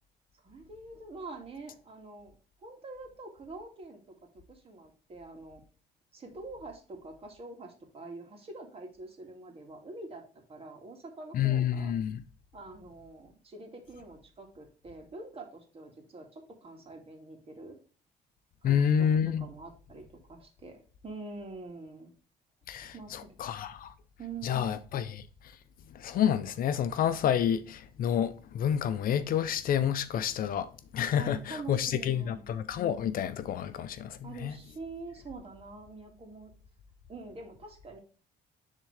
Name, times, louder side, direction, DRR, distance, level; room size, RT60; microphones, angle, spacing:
voice 1, 0.3-2.4 2.6-4.2 4.5-5.6 6.1-11.9 12.5-17.8 18.6-22.1 22.9-23.6 24.2-24.8 31.2-32.5 34.2-36.5 37.1-38.0, right 3 dB, 35° right, 2.2 m, -45 dB
voice 2, 11.3-12.2 18.6-19.4 22.7-23.9 24.4-25.2 26.0-30.7 30.9-34.5, left 9 dB, 55° left, 0.6 m, -29 dB
10.0 x 3.7 x 3.3 m
cardioid pair, 110°, 17 cm